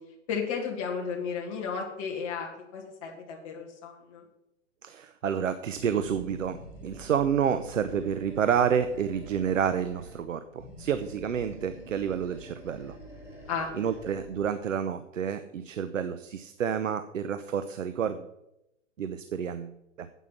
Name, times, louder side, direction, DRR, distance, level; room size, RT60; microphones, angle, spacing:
voice 1, 0.3-4.2 13.5-13.7, left 6 dB, 25° left, -1 dB, 2.2 m, -33 dB
voice 2, 4.8-13.0 13.7-18.3 19.0-20.1, right 8 dB, 80° right, 11 dB, 0.9 m, -29 dB
Animal, 5.7-10.2 10.5-14.5, equal, 5° right, 2.3 m, -47 dB
9.4 x 8.3 x 5.9 m, 0.85 s
hypercardioid pair, 170°, 38 cm